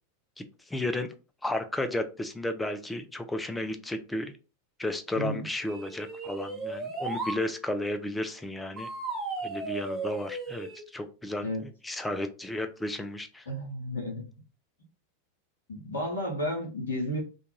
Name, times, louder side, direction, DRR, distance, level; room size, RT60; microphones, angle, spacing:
voice 1, 0.4-1.1 1.4-4.3 4.8-8.9 9.4-13.5, left 1 dB, 10° left, 7 dB, 0.4 m, -33 dB
sound 1, 5.6-7.4 8.8-10.8, right 3 dB, 20° right, 0.8 m, -35 dB
voice 2, 13.5-14.2 15.7-17.2, equal, 70° left, 0 dB, 0.7 m, -32 dB
2.4 x 2.2 x 3.1 m, 0.33 s
figure-of-eight pair, 90°, 0 cm